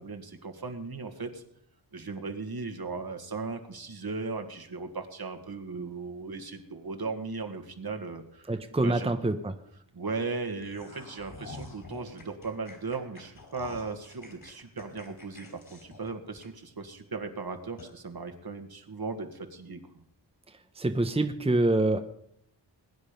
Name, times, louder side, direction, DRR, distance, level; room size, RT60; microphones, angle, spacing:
voice 1, 0.0-1.4 1.9-9.1 9.9-19.8, right 4 dB, 55° right, 6 dB, 1.9 m, -37 dB
voice 2, 8.5-9.5 20.8-22.0, right 2 dB, 15° right, 6 dB, 1.0 m, -26 dB
sound 1, 10.6-16.9 17.2-17.3 17.8-17.9, left 2 dB, 50° left, 4.7 m, -47 dB
21.0 x 9.8 x 5.3 m, 0.71 s
wide cardioid pair, 75°, 44 cm